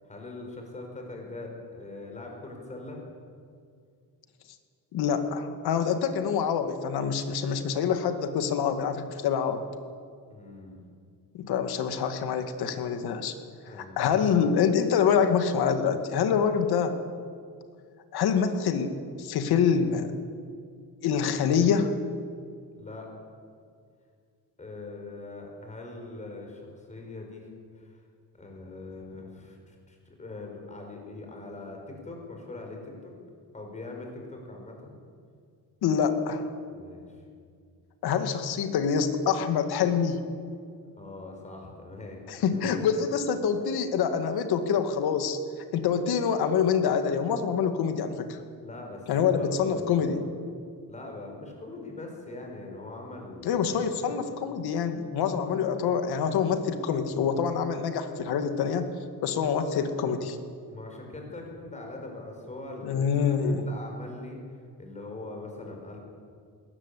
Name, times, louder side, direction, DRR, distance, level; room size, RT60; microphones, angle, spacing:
voice 1, 0.0-3.0 10.3-10.8 13.7-14.0 22.8-23.1 24.6-27.5 27.8-28.0 28.4-33.1 33.5-35.0 36.7-37.2 41.0-43.0 48.6-50.3 50.9-53.5 53.9-54.2 60.7-63.3 63.6-66.0, left 2 dB, 20° left, 1 dB, 5.2 m, -42 dB
voice 2, 4.9-9.6 11.3-13.3 13.7-16.9 18.1-20.1 21.0-21.9 35.8-36.4 38.0-40.2 42.3-45.4 45.7-48.4 49.1-50.2 53.4-58.9 59.2-60.4 62.8-63.6, left 7 dB, 90° left, 8 dB, 2.3 m, -26 dB
21.5 x 18.5 x 8.5 m, 2.2 s
cardioid pair, 170°, 37 cm